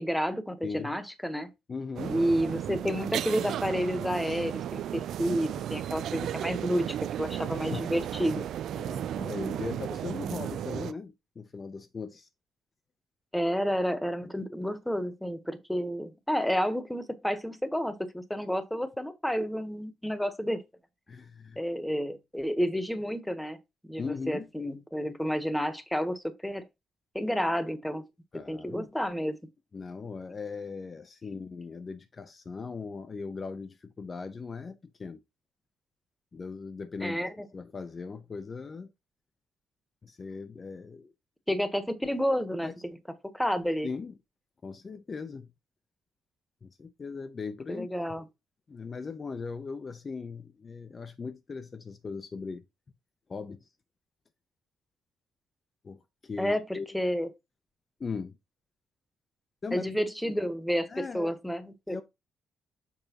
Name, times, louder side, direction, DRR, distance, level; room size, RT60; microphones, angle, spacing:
voice 1, 0.0-1.5 2.1-6.9 7.2-8.4 13.3-20.6 21.6-23.6 23.8-26.6 27.1-28.0 28.5-29.4 37.0-37.3 41.5-42.7 43.3-43.9 47.7-48.2 56.4-57.3 59.7-60.9 61.1-62.0, equal, 5° left, 1.1 m, -30 dB
voice 2, 0.6-1.0 1.7-2.2 7.7-7.9 8.7-12.3 21.1-21.6 24.0-24.5 28.3-28.9 29.7-35.2 36.3-38.9 40.0-41.1 42.6-42.7 43.8-44.1 44.6-45.5 46.6-47.9 48.7-52.6 53.3-53.7 55.8-56.9 58.0-58.4 59.6-59.9 60.9-61.4 61.9-62.0, left 4 dB, 35° left, 0.6 m, -39 dB
sound 1, 2.0-10.9, right 10 dB, 75° right, 0.3 m, -34 dB
7.0 x 5.1 x 2.9 m
cardioid pair, 90°, 0 cm